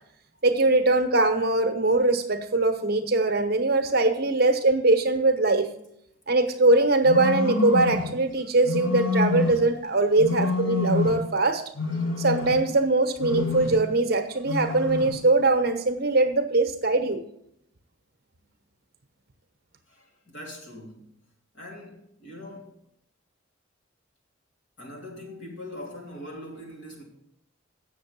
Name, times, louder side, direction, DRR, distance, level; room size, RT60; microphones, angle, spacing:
voice 1, 0.4-5.7 6.3-11.6 12.2-17.2, right 2 dB, 50° right, 1.0 m, -22 dB
sound 1, 7.0-8.1 8.6-9.7 10.2-11.3 11.7-12.8 13.2-13.9 14.4-15.2, left 3 dB, 80° left, 1.5 m, -27 dB
voice 2, 19.9-21.1 21.5-22.8 24.8-27.0, left 1 dB, 65° left, 3.1 m, -42 dB
8.3 x 6.7 x 7.0 m
head